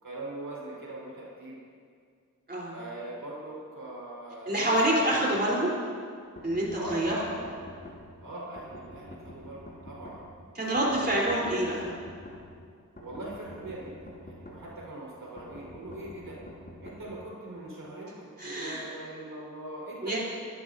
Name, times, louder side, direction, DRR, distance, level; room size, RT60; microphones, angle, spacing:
voice 1, 0.0-1.6 2.7-5.0 6.7-7.6 8.2-10.3 10.6-11.5 11.7-11.8 13.0-16.4 16.8-20.2, right 1 dB, 80° right, -5 dB, 4.6 m, -41 dB
voice 2, 4.5-5.7 6.4-7.2 10.6-11.9 18.4-18.8 20.0-20.2, right 1 dB, 30° right, -5 dB, 3.8 m, -27 dB
sound 1, 6.4-8.0 8.6-10.2 10.8-12.4 13.0-14.6 15.4-17.0, left 1 dB, 35° left, 4.7 m, -47 dB
25.5 x 13.5 x 2.7 m, 2.2 s
wide cardioid pair, 70°, 32 cm